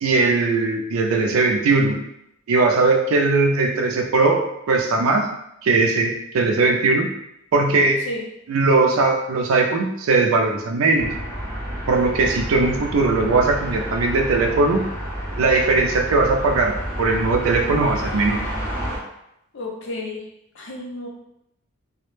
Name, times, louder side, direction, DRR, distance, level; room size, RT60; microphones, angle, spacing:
voice 1, 0.0-2.0 2.5-5.3 5.6-7.1 7.5-8.1 8.5-11.1 11.9-14.8 15.4-18.4, right 3 dB, 70° right, 2 dB, 0.4 m, -19 dB
sound 1, 11.0-19.0, equal, 10° left, 0.5 m, -30 dB
voice 2, 19.5-20.2 20.5-21.1, left 2 dB, 55° left, 0 dB, 0.5 m, -31 dB
2.0 x 2.0 x 3.0 m, 0.81 s
head